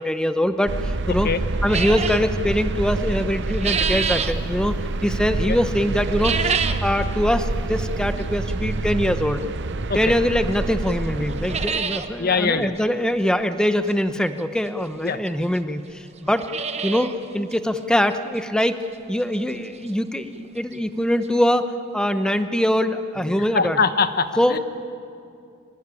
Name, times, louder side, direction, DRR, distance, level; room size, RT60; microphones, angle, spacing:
voice 1, 0.0-1.3 1.6-6.6 6.8-9.4 9.9-16.5 16.8-18.8 19.1-23.8 24.4-24.6, equal, 5° left, 10 dB, 0.9 m, -23 dB
sound 1, 0.7-11.7, right 2 dB, 55° right, 0.8 m, -27 dB
voice 2, 1.1-1.4 5.5-5.6 9.9-10.1 12.2-12.8 15.0-15.2 23.2-24.6, left 5 dB, 45° left, 11 dB, 1.1 m, -23 dB
sound 2, 1.7-2.3 3.2-4.4 6.1-6.9 7.3-7.4 8.2-8.3 10.0-10.1 10.5-10.6 10.9-11.0 11.3-12.1 12.4-12.5 12.7-12.8 14.4-14.5 15.3-15.4 15.6-15.7 16.2-17.2 17.5-17.6 18.1-18.2 18.6-18.7 20.4-20.5 20.7-20.8 21.2-21.3, right 6 dB, 30° right, 1.0 m, -26 dB
24.5 x 19.5 x 9.9 m, 2.5 s
head